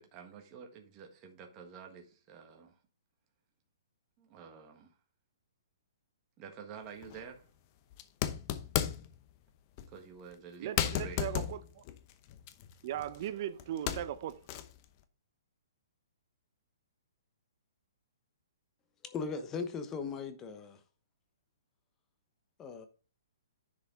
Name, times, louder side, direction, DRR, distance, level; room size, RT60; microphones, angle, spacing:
voice 1, 0.0-2.8 4.2-4.9 6.4-7.5 9.9-11.3, right 6 dB, 25° right, 1.6 m, -49 dB
sound 1, 7.0-7.2 7.9-9.2 9.8-9.9 10.3-10.4 10.8-13.3 13.6-14.8, left 11 dB, 35° left, 0.8 m, -35 dB
voice 2, 10.6-11.8 12.8-14.4, right 11 dB, 45° right, 0.7 m, -38 dB
voice 3, 19.0-20.8 22.6-22.9, left 5 dB, 15° left, 1.0 m, -38 dB
10.0 x 5.0 x 3.7 m
hypercardioid pair, 150°, 2 cm